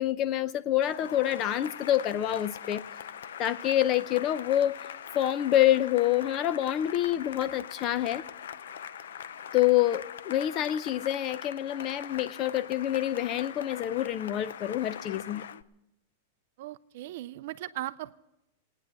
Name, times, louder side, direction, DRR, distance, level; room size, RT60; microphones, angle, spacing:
voice 1, 0.0-2.8 3.4-4.8 5.1-8.2 9.5-15.5, left 12 dB, 30° left, 0.6 m, -27 dB
Cheering / Applause, 0.8-15.6, left 8 dB, 85° left, 0.6 m, -42 dB
voice 2, 16.6-18.2, right 15 dB, 55° right, 0.5 m, -38 dB
19.0 x 9.8 x 7.5 m
supercardioid pair, 160°, 0 cm